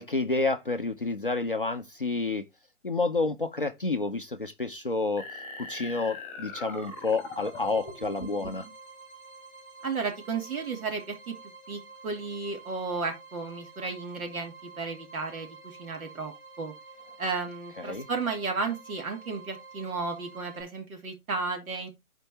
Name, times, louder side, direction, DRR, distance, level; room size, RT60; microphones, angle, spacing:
voice 1, 0.0-2.4 2.8-5.3 5.6-8.7 17.8-18.1, left 3 dB, 40° left, 0.4 m, -29 dB
sound 1, 5.2-8.7, left 2 dB, 5° left, 2.2 m, -41 dB
sound 2, 6.4-20.6, right 4 dB, 15° right, 2.5 m, -49 dB
voice 2, 9.8-11.3 11.7-16.7 17.2-21.9, right 4 dB, 70° right, 2.9 m, -33 dB
13.0 x 4.5 x 2.8 m
hypercardioid pair, 170°, 44 cm